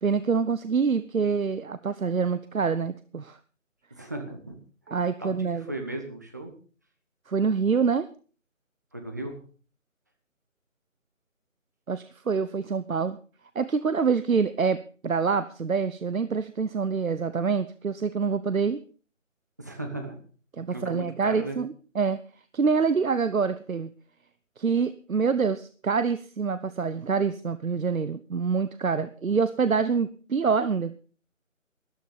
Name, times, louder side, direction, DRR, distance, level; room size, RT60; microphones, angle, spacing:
voice 1, 0.0-3.4 4.9-5.7 7.3-8.1 11.9-13.2 13.5-18.8 20.6-22.2 22.5-23.9 24.6-30.9, right 5 dB, 80° right, 13 dB, 1.0 m, -26 dB
voice 2, 3.9-4.6 5.2-6.5 8.9-9.4 19.6-20.2 20.7-21.6, right 1 dB, 15° right, 4 dB, 0.9 m, -36 dB
13.5 x 12.0 x 5.2 m, 0.39 s
figure-of-eight pair, 165°, 40 cm